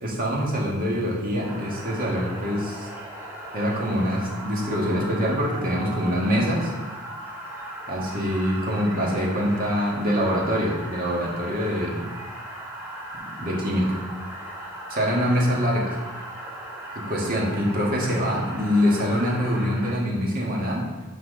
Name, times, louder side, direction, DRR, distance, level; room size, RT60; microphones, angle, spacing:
voice 1, 0.0-2.9 3.5-6.7 7.9-12.1 13.4-14.0 14.9-15.9 17.0-20.8, equal, 40° right, -3 dB, 1.8 m, -24 dB
sound 1, 1.4-19.9, right 1 dB, 10° right, 1.3 m, -38 dB
6.0 x 4.6 x 6.6 m, 1.3 s
head